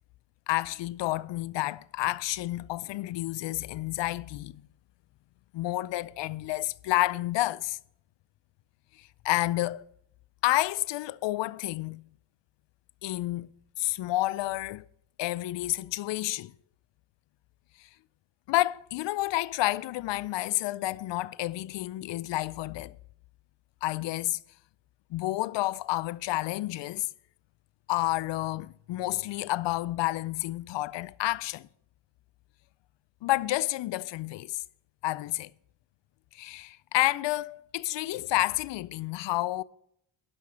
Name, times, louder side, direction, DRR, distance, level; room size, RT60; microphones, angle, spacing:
voice 1, 0.5-4.6 5.5-7.8 9.0-9.8 10.4-12.0 13.0-13.5 13.8-14.9 15.2-16.5 17.8-17.9 18.5-23.0 23.8-24.4 25.1-27.1 27.9-31.7 33.2-34.6 35.0-35.5 36.3-39.6, left 17 dB, 65° left, 0.5 m, -30 dB
11.0 x 5.9 x 6.1 m
cardioid pair, 85°, 47 cm